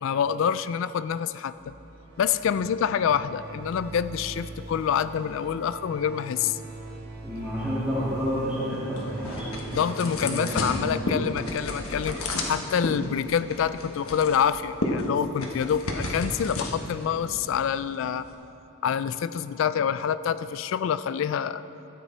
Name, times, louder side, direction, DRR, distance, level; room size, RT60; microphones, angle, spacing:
voice 1, 0.0-1.7 2.2-6.6 9.7-12.2 12.5-18.3 18.8-21.6, left 8 dB, 65° left, 14 dB, 0.3 m, -26 dB
sound 1, 1.5-9.7, right 2 dB, 50° right, 1.3 m, -43 dB
voice 2, 7.2-11.1, equal, 5° right, -11 dB, 1.8 m, -30 dB
sound 2, 8.2-18.3, left 2 dB, 85° left, 1.2 m, -33 dB
13.0 x 8.4 x 4.3 m, 3.0 s
head